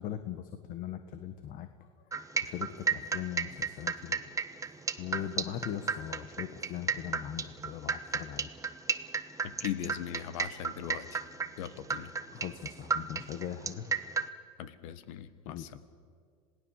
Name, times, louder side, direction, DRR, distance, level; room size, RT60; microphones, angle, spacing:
voice 1, 0.0-1.7 2.4-4.2 5.0-8.5 12.3-13.9 15.5-15.6, left 10 dB, 55° left, 9 dB, 1.5 m, -40 dB
sound 1, 2.1-14.3, right 5 dB, 20° right, 1.2 m, -33 dB
voice 2, 9.4-11.2 11.6-12.1 14.6-15.8, left 11 dB, 75° left, 13 dB, 1.6 m, -39 dB
27.5 x 18.0 x 7.4 m, 2.1 s
supercardioid pair, 105°, 17 cm